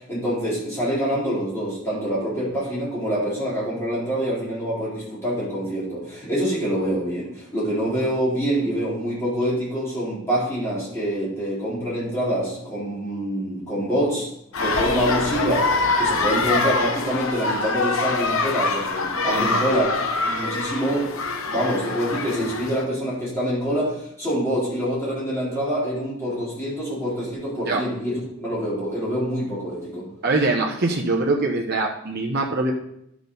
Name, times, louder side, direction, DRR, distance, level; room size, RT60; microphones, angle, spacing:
voice 1, 0.0-14.3 14.6-19.8 20.2-21.1 21.5-30.1, equal, 10° left, -9 dB, 3.9 m, -26 dB
sound 1, 14.5-22.8, left 3 dB, 75° left, 1.0 m, -24 dB
voice 2, 19.2-19.6 27.6-27.8 30.2-32.7, right 2 dB, 50° right, -1 dB, 1.0 m, -23 dB
11.5 x 6.1 x 4.1 m, 0.76 s
head